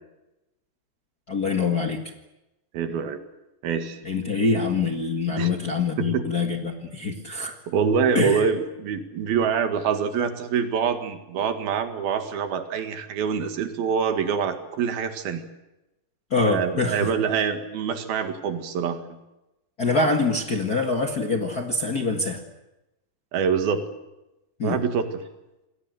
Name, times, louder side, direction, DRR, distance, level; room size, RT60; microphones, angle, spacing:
voice 1, 1.3-2.0 4.0-7.6 8.1-8.4 16.3-17.1 19.8-22.4 24.6-24.8, left 3 dB, 40° left, 2 dB, 1.5 m, -25 dB
voice 2, 2.7-3.2 3.6-4.0 5.4-5.5 6.0-6.2 7.7-15.5 16.4-19.2 23.3-23.8 24.6-25.1, right 6 dB, 80° right, 7 dB, 3.8 m, -25 dB
28.0 x 20.5 x 8.0 m, 0.96 s
omnidirectional pair, 4.2 m